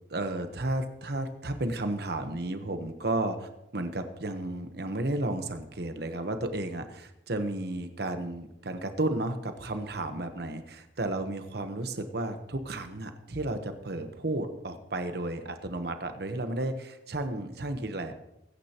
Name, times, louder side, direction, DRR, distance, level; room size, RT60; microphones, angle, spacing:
voice 1, 0.1-18.2, right 2 dB, 60° right, 8 dB, 1.1 m, -33 dB
20.5 x 9.9 x 3.0 m, 0.88 s
head